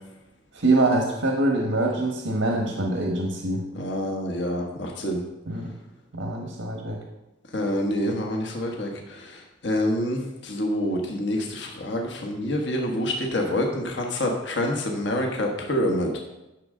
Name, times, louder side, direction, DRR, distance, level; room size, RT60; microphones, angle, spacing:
voice 1, 0.5-3.6 5.4-5.7 6.1-7.0, right 2 dB, 75° right, 1 dB, 1.3 m, -24 dB
voice 2, 3.7-5.2 7.5-9.4 9.6-16.1, left 1 dB, 60° left, 1 dB, 1.2 m, -27 dB
11.5 x 6.4 x 3.8 m, 0.98 s
head